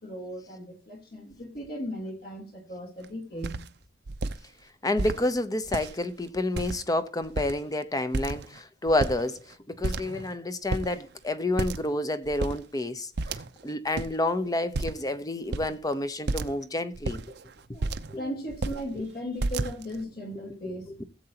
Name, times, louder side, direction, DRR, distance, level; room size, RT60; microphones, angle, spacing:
voice 1, 0.0-3.6 17.7-20.9, equal, 60° left, 3.2 m, -37 dB
sound 1, 3.0-3.1 3.4-3.7 4.1-4.4 5.0-5.2 5.6-6.1 6.6-7.0 7.2-7.7 8.1-8.6 8.9-9.5 9.8-10.4 10.7-10.9 11.6-12.0 12.3-12.6 13.2-13.7 13.9-14.1 14.7-15.1 15.5-15.7 16.3-16.6 16.9-18.2 18.5-18.8 19.4-20.0, right 3 dB, 65° right, 0.6 m, -31 dB
voice 2, 4.8-13.1 13.6-17.2 18.1-18.2, left 2 dB, 20° left, 0.8 m, -29 dB
16.5 x 7.7 x 2.9 m
head